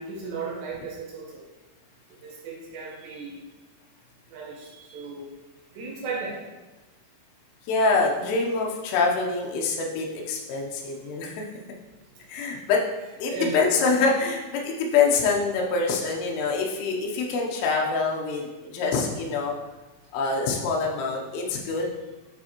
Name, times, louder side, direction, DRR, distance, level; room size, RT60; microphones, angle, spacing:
voice 1, 0.0-1.4 2.2-3.4 4.3-5.2 5.7-6.4 13.3-13.6, right 4 dB, 65° right, -3 dB, 2.8 m, -35 dB
voice 2, 7.7-11.4 12.3-12.8 13.2-19.5 20.1-21.9, left 4 dB, 80° left, -1 dB, 2.8 m, -25 dB
8.7 x 4.3 x 2.9 m, 1.1 s
omnidirectional pair, 4.9 m